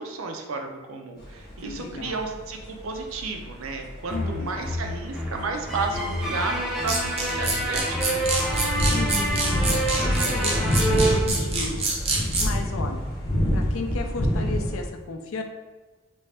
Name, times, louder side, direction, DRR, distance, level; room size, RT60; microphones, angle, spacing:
voice 1, 0.0-8.2, right 3 dB, 70° right, 3 dB, 0.5 m, -32 dB
sound 1, 1.2-14.8, equal, 50° left, 1.2 m, -28 dB
voice 2, 1.6-2.2 4.1-4.5 8.8-11.9 12.4-13.0 13.5-15.4, left 3 dB, 70° left, 4 dB, 0.4 m, -34 dB
sound 2, 4.1-11.2, right 1 dB, ahead, 0.8 m, -28 dB
sound 3, 6.8-12.5, right 3 dB, 30° right, 0.6 m, -26 dB
3.2 x 2.6 x 3.3 m, 1.2 s
head